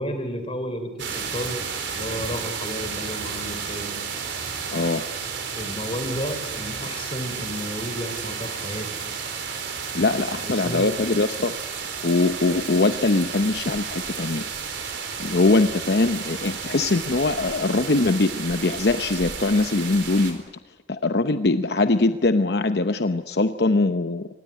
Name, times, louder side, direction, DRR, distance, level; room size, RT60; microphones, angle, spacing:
voice 1, 0.0-1.6 1.9-4.0 5.5-8.9 10.4-10.9, equal, 30° left, 8 dB, 3.5 m, -32 dB
sound 1, 1.0-20.3, right 6 dB, 85° right, 4.4 m, -32 dB
voice 2, 4.7-5.1 9.9-11.6 12.0-14.5 15.2-20.4 20.9-24.3, left 2 dB, 65° left, 9 dB, 0.8 m, -22 dB
24.5 x 19.5 x 9.7 m, 1.2 s
head